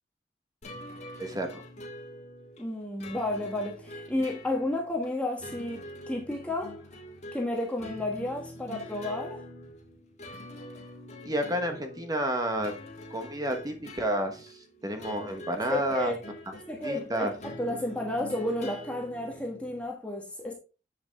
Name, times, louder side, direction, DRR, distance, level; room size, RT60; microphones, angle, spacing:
sound 1, 0.6-19.8, left 1 dB, 40° left, 1.7 m, -45 dB
voice 1, 1.2-1.6 11.2-12.7 13.1-16.1 16.5-16.6 16.8-17.3, right 1 dB, 20° right, 1.1 m, -30 dB
voice 2, 2.6-6.8 7.3-9.4 15.7-16.2 16.7-20.5, left 1 dB, 5° left, 1.4 m, -32 dB
7.7 x 7.0 x 3.5 m
head